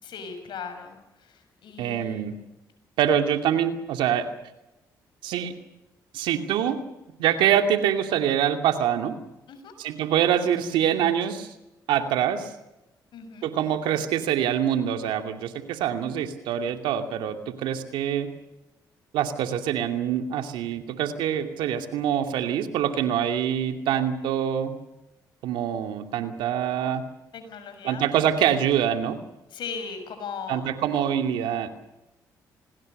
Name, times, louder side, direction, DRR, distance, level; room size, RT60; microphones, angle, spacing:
voice 1, 0.0-2.4 9.5-9.7 13.1-13.5 27.3-28.1 29.5-30.7, left 5 dB, 70° left, 8 dB, 6.4 m, -38 dB
voice 2, 1.8-2.3 3.0-4.3 5.2-5.5 6.1-6.8 7.2-9.1 9.8-11.5 11.9-12.5 13.4-17.4 17.6-18.3 19.1-24.8 25.4-27.0 27.8-29.2 30.5-31.7, right 9 dB, 85° right, 6 dB, 2.5 m, -25 dB
27.5 x 20.0 x 6.6 m, 0.93 s
supercardioid pair, 60°, 8 cm